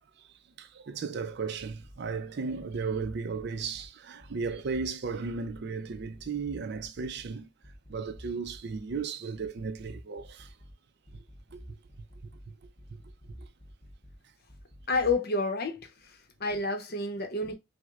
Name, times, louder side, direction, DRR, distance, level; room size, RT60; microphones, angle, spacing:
voice 1, 0.6-7.5 7.9-10.5 11.5-11.6, right 5 dB, 55° right, 0.5 m, -35 dB
sound 1, 1.8-2.2 2.5-3.9 4.2-5.6 5.9-7.3 7.6-9.0 9.3-10.7 11.1-12.5 12.8-14.2 14.5-15.2, equal, 20° left, 0.8 m, -50 dB
voice 2, 14.9-17.5, left 3 dB, 50° left, 0.7 m, -30 dB
5.9 x 2.1 x 2.4 m
head